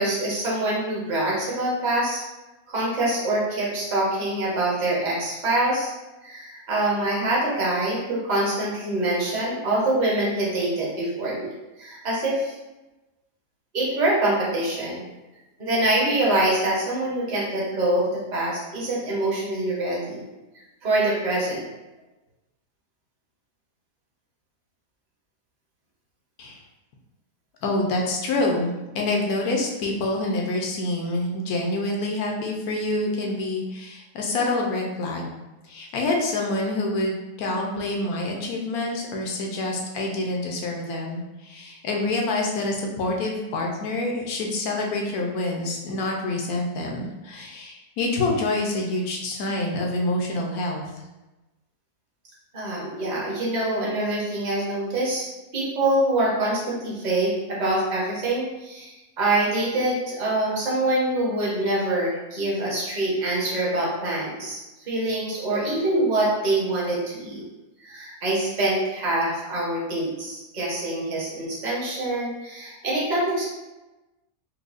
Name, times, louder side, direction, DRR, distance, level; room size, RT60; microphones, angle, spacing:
voice 1, 0.0-2.2 2.7-5.9 6.2-12.5 13.7-15.1 15.6-20.2 20.8-21.7 52.5-55.2 55.5-67.4 67.8-73.4, right 1 dB, 35° right, -6 dB, 1.0 m, -25 dB
voice 2, 27.6-35.3 35.7-50.8, left 2 dB, 75° left, 0 dB, 1.2 m, -27 dB
4.7 x 2.2 x 2.5 m, 1.1 s
omnidirectional pair, 1.6 m